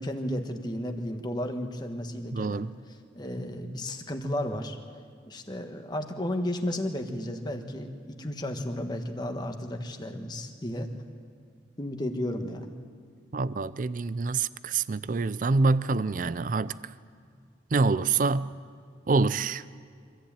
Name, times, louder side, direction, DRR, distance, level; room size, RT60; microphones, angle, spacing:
voice 1, 0.0-2.7 3.1-4.8 5.3-10.9 11.8-12.8, left 1 dB, 25° left, 1.5 m, -33 dB
voice 2, 2.3-2.7 13.3-16.8 17.7-18.5 19.1-19.6, right 3 dB, 45° right, 0.4 m, -26 dB
24.5 x 14.5 x 8.9 m
head